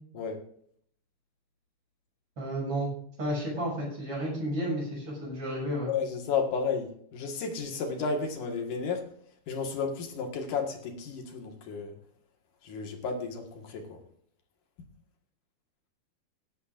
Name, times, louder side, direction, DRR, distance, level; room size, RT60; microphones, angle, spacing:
voice 1, 2.4-2.9 3.2-5.9, equal, 35° right, -3 dB, 7.3 m, -32 dB
voice 2, 5.9-9.1 9.5-12.0 12.6-14.0, left 5 dB, 60° left, 2 dB, 2.8 m, -32 dB
21.5 x 10.5 x 2.5 m, 0.64 s
omnidirectional pair, 4.7 m